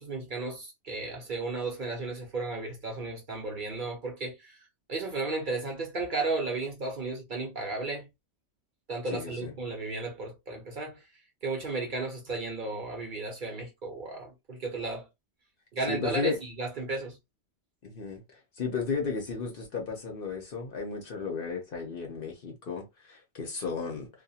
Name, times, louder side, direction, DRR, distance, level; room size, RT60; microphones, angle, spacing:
voice 1, 0.0-4.6 4.9-8.1 8.9-11.0 11.4-15.1 15.7-17.2, right 3 dB, 50° right, 0.8 m, -34 dB
voice 2, 9.1-9.5 15.9-16.4 17.8-18.2 18.6-24.1, left 5 dB, 55° left, 0.8 m, -34 dB
2.4 x 2.3 x 2.7 m
omnidirectional pair, 1.2 m